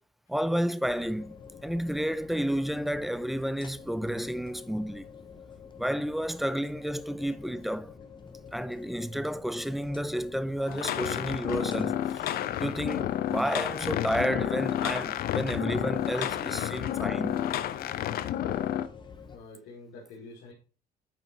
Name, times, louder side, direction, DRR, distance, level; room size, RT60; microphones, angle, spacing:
voice 1, 0.3-1.4 1.6-5.1 5.8-7.9 8.5-12.3 12.6-17.4, equal, ahead, 0.4 m, -31 dB
sound 1, 0.8-19.4, left 6 dB, 25° left, 1.1 m, -48 dB
sound 2, 10.6-18.9, left 11 dB, 65° left, 0.6 m, -30 dB
voice 2, 18.4-19.0 19.3-20.5, left 3 dB, 80° left, 2.6 m, -47 dB
9.0 x 3.9 x 4.6 m
cardioid pair, 110°, 17 cm